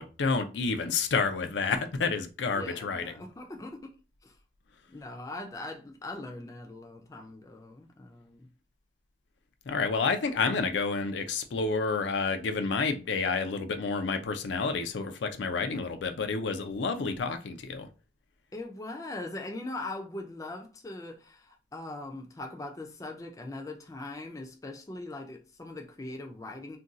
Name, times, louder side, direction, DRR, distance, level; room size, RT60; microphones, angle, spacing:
voice 1, 0.0-3.2 9.7-17.9, left 4 dB, 90° left, 0.4 m, -29 dB
voice 2, 2.5-3.9 4.2-4.4 4.9-8.5 18.5-26.8, left 2 dB, 20° left, 0.4 m, -41 dB
2.5 x 2.3 x 3.8 m
head